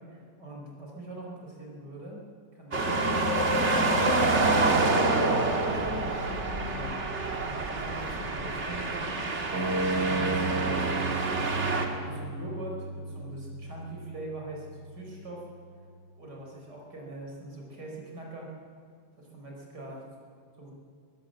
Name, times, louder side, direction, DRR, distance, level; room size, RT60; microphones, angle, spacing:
voice 1, 0.1-2.2 2.5-3.9 4.4-7.1 7.4-11.3 11.9-15.5 16.2-18.5 19.1-20.0 20.6-20.7, right 2 dB, 70° right, -1 dB, 5.4 m, -43 dB
sound 1, 2.7-11.9, right 2 dB, 40° right, 2.1 m, -27 dB
sound 2, 9.5-15.5, right 3 dB, 85° right, 4.0 m, -34 dB
24.0 x 15.0 x 7.8 m, 2.1 s
omnidirectional pair, 1.9 m